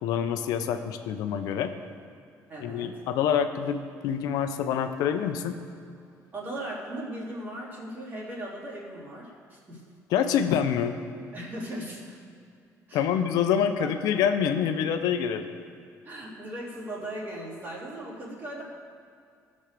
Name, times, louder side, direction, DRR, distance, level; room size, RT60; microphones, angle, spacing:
voice 1, 0.0-1.7 2.6-5.6 10.1-11.0 12.9-15.4, left 8 dB, 90° left, 8 dB, 0.8 m, -26 dB
voice 2, 2.5-3.0 6.3-9.8 11.3-12.2 12.9-13.0 13.8-13.9 16.0-18.6, right 1 dB, 35° right, -6 dB, 3.5 m, -38 dB
16.0 x 6.4 x 6.9 m, 2.4 s
cardioid pair, 150°, 6 cm